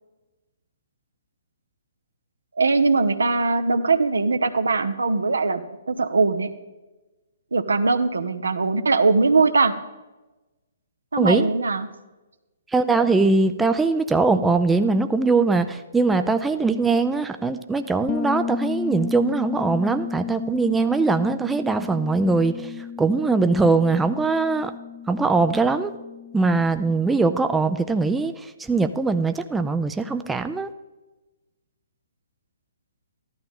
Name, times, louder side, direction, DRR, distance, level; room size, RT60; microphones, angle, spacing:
voice 1, 2.6-6.5 7.5-9.7 11.1-11.9, right 3 dB, 80° right, 10 dB, 0.9 m, -21 dB
voice 2, 11.2-11.5 12.7-22.7 23.0-24.7 25.1-25.9 26.3-30.7, right 3 dB, 5° right, 8 dB, 0.5 m, -21 dB
Bass guitar, 18.1-27.7, left 7 dB, 30° left, 0.8 m, -34 dB
14.0 x 11.5 x 3.6 m, 1.1 s
figure-of-eight pair, 135°, 0 cm